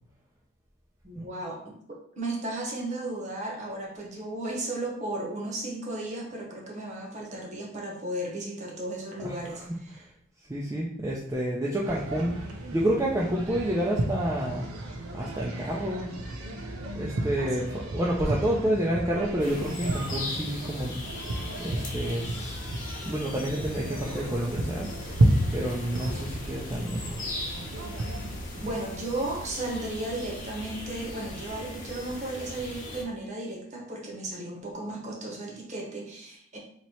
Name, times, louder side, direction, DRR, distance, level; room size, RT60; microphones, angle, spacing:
voice 1, 1.0-10.0 17.4-17.7 28.6-36.6, right 1 dB, 35° right, -1 dB, 0.9 m, -35 dB
voice 2, 9.2-9.7 9.9-10.0 10.5-14.7 15.1-16.1 16.9-21.0 21.6-22.5 23.1-24.9 25.5-27.4, right 1 dB, 15° right, -5 dB, 0.4 m, -29 dB
sound 1, 11.8-28.4, right 1 dB, 80° right, 0.7 m, -32 dB
sound 2, 19.4-33.0, left 1 dB, 35° left, 0.9 m, -39 dB
sound 3, 23.6-31.5, right 2 dB, 55° right, 1.2 m, -49 dB
3.0 x 2.8 x 4.3 m, 0.68 s
head